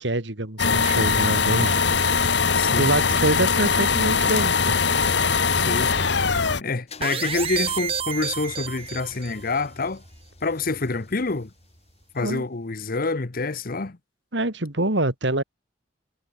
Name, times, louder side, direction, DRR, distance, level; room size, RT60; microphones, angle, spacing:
voice 1, 0.0-1.8 2.8-4.7 12.2-12.4 14.3-15.4, right 2 dB, 70° right, 2.9 m, -25 dB
sound 1, 0.6-6.6, left 5 dB, 65° left, 1.5 m, -21 dB
voice 2, 2.5-2.9 5.5-6.1 6.6-10.0 10.4-11.5 12.1-14.0, left 3 dB, 50° left, 0.9 m, -27 dB
Car / Engine starting / Idling, 6.9-12.7, left 3 dB, 35° left, 7.3 m, -47 dB
sound 2, 7.0-9.4, right 7 dB, 30° right, 0.9 m, -29 dB
head